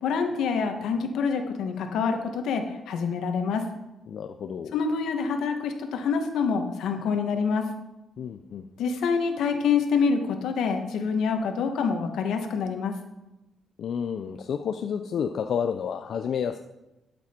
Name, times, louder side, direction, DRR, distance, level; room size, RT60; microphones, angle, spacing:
voice 1, 0.0-3.6 4.7-7.6 8.8-12.9, left 5 dB, 85° left, 5 dB, 1.5 m, -26 dB
voice 2, 4.1-4.8 8.2-8.7 13.8-16.6, left 7 dB, 65° left, 7 dB, 0.5 m, -30 dB
12.0 x 7.5 x 4.5 m, 0.97 s
cardioid pair, 95°, 0 cm